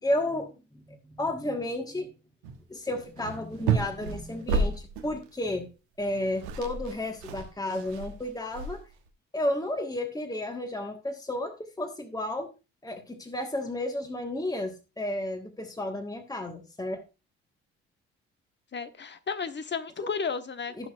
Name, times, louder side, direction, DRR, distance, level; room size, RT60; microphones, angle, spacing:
voice 1, 0.0-2.1 2.7-5.7 6.0-8.8 9.3-12.5 12.8-17.0 20.0-20.1 20.8-20.9, left 1 dB, 10° left, 5 dB, 1.5 m, -32 dB
sound 1, 2.4-2.6 2.9-5.2 6.0-6.1 6.3-9.1, right 4 dB, 70° right, 1.2 m, -31 dB
voice 2, 18.7-20.9, left 5 dB, 30° left, 10 dB, 1.1 m, -33 dB
17.5 x 6.1 x 2.5 m, 0.29 s
figure-of-eight pair, 45°, 34 cm